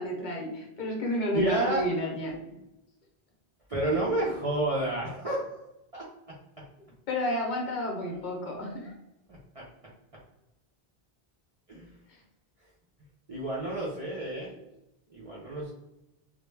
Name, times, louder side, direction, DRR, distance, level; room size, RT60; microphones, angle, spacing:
voice 1, 0.0-2.3 7.1-8.9 12.1-12.2, left 1 dB, 60° left, -1 dB, 0.6 m, -31 dB
voice 2, 1.3-1.9 3.7-5.5 5.9-6.4 8.7-8.8 9.3-9.6 11.7-11.9 13.3-14.6 15.1-15.7, right 2 dB, 50° right, -5 dB, 0.4 m, -30 dB
2.1 x 2.0 x 3.1 m, 0.91 s
omnidirectional pair, 1.0 m